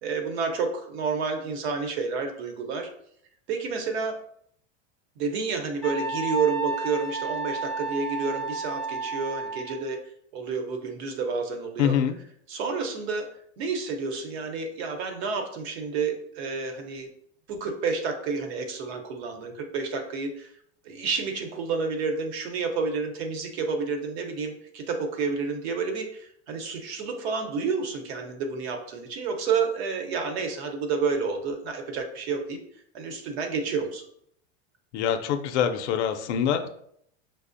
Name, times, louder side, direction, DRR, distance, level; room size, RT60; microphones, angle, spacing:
voice 1, 0.0-2.9 3.5-4.2 5.2-10.0 10.3-11.9 12.5-13.3 13.6-17.1 17.5-20.5 20.8-32.6 32.9-34.1, right 4 dB, 65° right, 4 dB, 0.8 m, -30 dB
Wind instrument woodwind instrument, 5.8-9.9, right 3 dB, ahead, 0.5 m, -32 dB
voice 2, 11.8-12.1 34.9-36.8, left 8 dB, 75° left, 7 dB, 0.5 m, -25 dB
5.5 x 2.0 x 2.5 m, 0.69 s
supercardioid pair, 160°, 34 cm